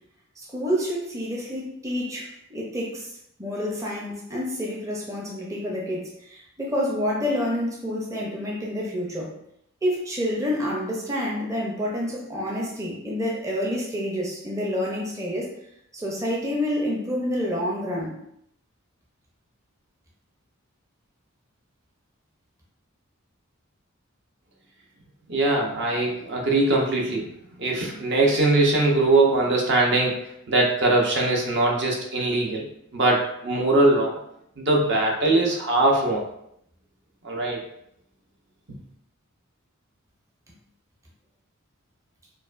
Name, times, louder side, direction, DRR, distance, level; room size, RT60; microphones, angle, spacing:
voice 1, 0.4-3.1 3.4-9.3 9.8-15.5 15.9-18.2, equal, 15° right, -3 dB, 0.5 m, -28 dB
voice 2, 25.3-27.3 27.6-30.2 30.5-32.7 32.9-34.2 34.6-36.2 37.2-37.6, right 2 dB, 55° right, 0 dB, 0.7 m, -21 dB
4.6 x 2.2 x 2.4 m, 0.74 s
head